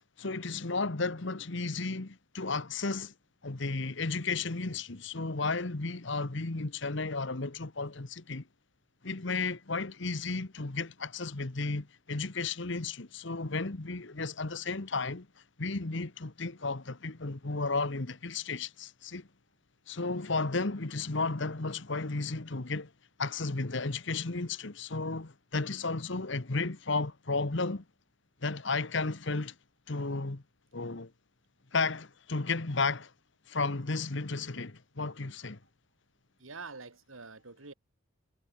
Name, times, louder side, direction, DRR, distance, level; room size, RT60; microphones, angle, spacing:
voice 1, 0.2-3.1 3.4-8.4 9.0-15.3 15.6-19.3 19.9-22.9 23.2-27.8 28.4-29.5 29.9-30.4 30.7-31.1 31.7-33.1 33.5-35.6, left 3 dB, 55° left, 1.2 m, -33 dB
voice 2, 36.4-37.7, right 4 dB, 70° right, 2.3 m, -46 dB
head